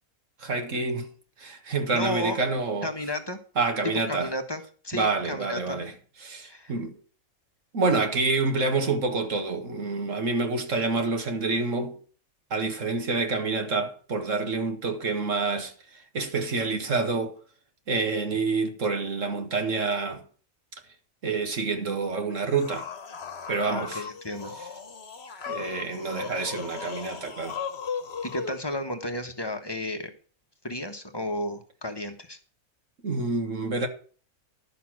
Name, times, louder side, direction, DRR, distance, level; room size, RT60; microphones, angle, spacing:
voice 1, 0.4-1.1 1.4-2.9 3.6-4.3 4.9-5.9 6.2-7.0 7.7-12.0 12.5-17.4 17.9-20.2 21.2-22.9 23.5-24.0 25.5-27.6 33.0-33.9, right 3 dB, 65° right, 1.9 m, -27 dB
voice 2, 1.9-2.4 2.8-3.4 4.1-5.8 6.4-6.7 23.7-24.5 28.2-30.1 30.6-32.4, left 1 dB, 20° left, 1.2 m, -33 dB
sound 1, 22.3-28.6, left 6 dB, 50° left, 1.4 m, -37 dB
11.5 x 6.9 x 6.2 m
omnidirectional pair, 1.5 m